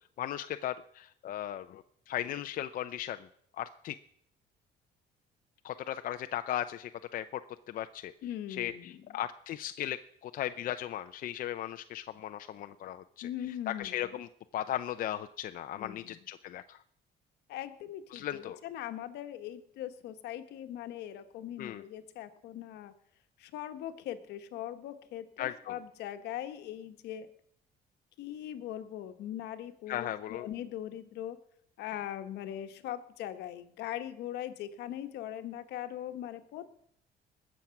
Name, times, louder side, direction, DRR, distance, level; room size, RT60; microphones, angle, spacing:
voice 1, 0.2-3.3 3.6-4.0 5.6-7.4 7.7-8.1 8.5-13.3 13.7-14.3 14.5-16.8 18.1-18.6 21.6-21.8 25.4-25.7 29.9-30.5, left 12 dB, 55° left, 9 dB, 0.5 m, -37 dB
voice 2, 8.2-9.0 13.2-14.1 15.8-16.2 17.5-22.9 23.4-27.3 28.2-31.4 31.8-36.7, left 11 dB, 80° left, 9 dB, 1.2 m, -40 dB
20.0 x 7.3 x 5.8 m, 0.69 s
cardioid pair, 110°, 17 cm